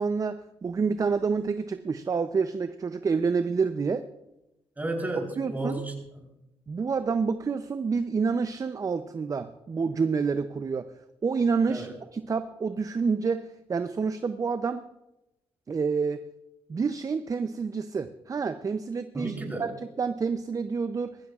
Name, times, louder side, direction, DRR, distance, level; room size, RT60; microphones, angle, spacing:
voice 1, 0.0-4.1 5.4-5.8 6.7-10.9 11.2-14.9 15.7-16.3 16.7-21.2, right 5 dB, 35° right, 0.5 m, -28 dB
voice 2, 4.8-6.3 11.7-11.9 19.1-19.7, right 2 dB, 15° right, 3.8 m, -33 dB
19.5 x 15.0 x 2.4 m
cardioid pair, 80°, 10 cm